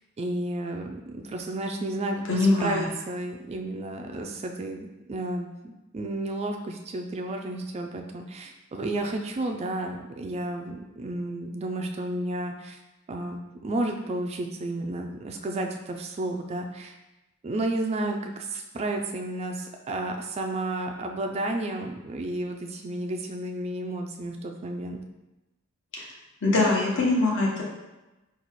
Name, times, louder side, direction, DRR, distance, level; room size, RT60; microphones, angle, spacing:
voice 1, 0.2-12.8 13.1-17.0 17.4-25.0, right 1 dB, 30° right, 3 dB, 0.3 m, -32 dB
voice 2, 2.3-2.9 25.9-26.0 26.4-27.6, left 2 dB, 60° left, -4 dB, 1.1 m, -23 dB
4.0 x 2.4 x 4.5 m, 1.0 s
head